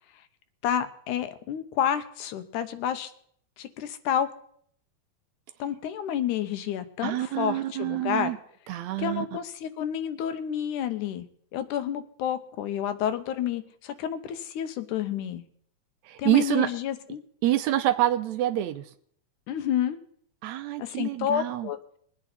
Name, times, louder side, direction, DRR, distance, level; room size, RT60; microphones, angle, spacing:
voice 1, 0.6-3.1 3.6-4.3 5.6-8.3 9.0-11.3 11.5-15.4 16.2-17.2 19.5-20.0 20.8-21.8, left 9 dB, 85° left, 9 dB, 2.4 m, -29 dB
voice 2, 7.0-8.4 8.7-9.3 16.1-16.7 17.4-18.8 20.4-21.7, right 14 dB, 75° right, 10 dB, 1.8 m, -26 dB
21.5 x 8.9 x 4.1 m, 0.63 s
omnidirectional pair, 3.5 m